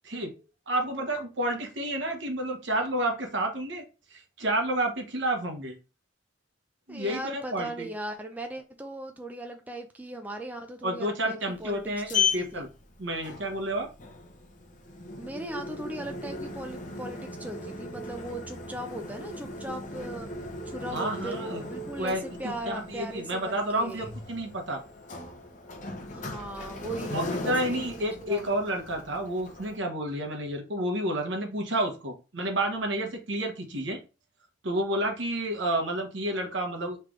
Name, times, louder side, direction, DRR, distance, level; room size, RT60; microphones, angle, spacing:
voice 1, 0.7-3.8 4.1-5.7 6.9-7.9 10.8-12.7 13.0-13.9 20.9-21.6 22.0-24.8 27.1-34.0 34.6-37.1, right 1 dB, 70° right, 1.0 m, -30 dB
voice 2, 6.9-12.7 15.2-20.3 20.7-24.1 26.1-27.9 28.2-28.5, right 1 dB, 10° right, 0.4 m, -38 dB
Sliding door, 11.5-29.8, left 4 dB, 40° left, 0.7 m, -37 dB
3.7 x 3.3 x 3.1 m
head